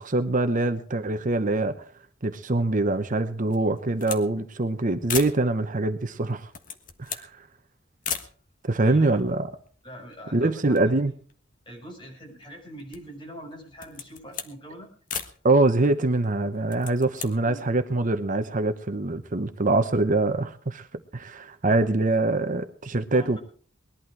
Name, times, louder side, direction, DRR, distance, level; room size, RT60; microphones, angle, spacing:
voice 1, 0.0-1.9 2.2-6.5 7.0-7.3 8.6-9.5 10.3-11.1 15.4-20.9 21.1-23.4, right 2 dB, 45° right, 9 dB, 0.9 m, -24 dB
sound 1, 3.5-4.3 4.6-4.7 5.0-5.4 6.3-7.3 8.0-8.3 9.1-9.2 9.4-10.3 10.6-11.9 12.4-13.2 13.7-14.5 15.1-15.4 16.5-17.3, left 7 dB, 45° left, 1.4 m, -36 dB
voice 2, 8.8-9.2 9.8-10.9 11.7-14.9 17.2-17.6 23.1-23.4, equal, 25° left, 0 dB, 5.9 m, -43 dB
20.5 x 11.5 x 4.7 m, 0.43 s
head